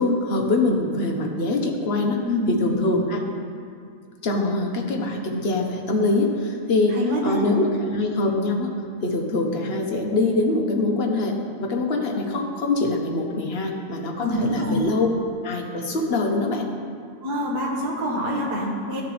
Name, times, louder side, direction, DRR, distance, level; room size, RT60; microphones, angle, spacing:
voice 1, 0.0-2.2 2.5-3.2 4.2-8.7 9.0-15.1 15.4-16.7, left 2 dB, 45° left, 2 dB, 1.0 m, -24 dB
voice 2, 2.2-2.6 6.9-7.4 14.2-14.8 17.2-19.0, equal, 75° right, -2 dB, 2.0 m, -25 dB
13.0 x 6.9 x 3.2 m, 2.3 s
omnidirectional pair, 1.7 m